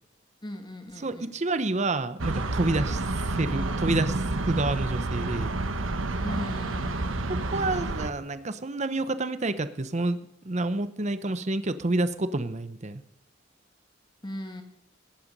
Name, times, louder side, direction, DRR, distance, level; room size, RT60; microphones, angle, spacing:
voice 1, 0.4-1.4 6.2-7.2 14.2-14.6, equal, 25° left, 5 dB, 1.8 m, -38 dB
voice 2, 1.0-5.5 7.5-10.2 10.4-13.0, right 2 dB, 35° right, 12 dB, 0.8 m, -29 dB
sound 1, 2.2-8.1, right 2 dB, 85° right, 1.2 m, -29 dB
16.5 x 10.0 x 5.4 m, 0.82 s
head